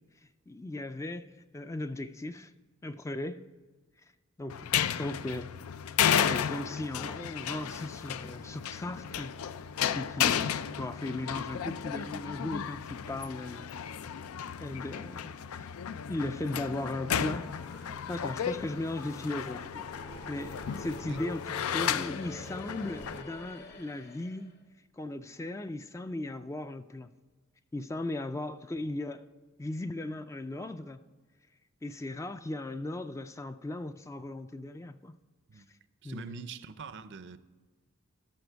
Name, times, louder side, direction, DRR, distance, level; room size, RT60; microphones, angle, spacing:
voice 1, 0.5-2.5 2.8-3.4 4.4-5.5 6.2-9.4 9.9-13.7 14.6-15.7 16.1-17.5 17.9-19.9 20.3-21.4 21.7-24.5 24.9-27.1 27.7-29.3 29.6-31.0 31.8-35.1 35.6-35.7 36.0-36.5, left 2 dB, 15° left, 0.3 m, -37 dB
sound 1, 4.5-23.2, left 8 dB, 85° left, 0.4 m, -33 dB
sound 2, 16.4-24.5, left 3 dB, 50° left, 1.1 m, -47 dB
voice 2, 36.0-37.4, right 5 dB, 55° right, 0.5 m, -44 dB
13.0 x 6.1 x 4.6 m
head